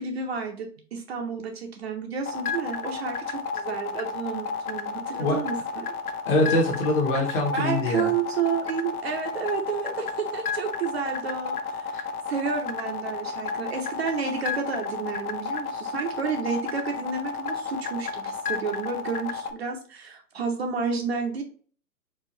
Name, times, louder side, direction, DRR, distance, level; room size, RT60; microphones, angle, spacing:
voice 1, 0.0-5.9 7.5-11.9 12.3-21.4, right 6 dB, 40° right, 3 dB, 0.7 m, -31 dB
sound 1, 2.3-19.5, left 5 dB, 65° left, 0.6 m, -32 dB
voice 2, 6.3-8.1 11.9-12.0, left 2 dB, 30° left, 2 dB, 1.0 m, -24 dB
4.6 x 2.4 x 2.8 m, 0.43 s
hypercardioid pair, 135°, 49 cm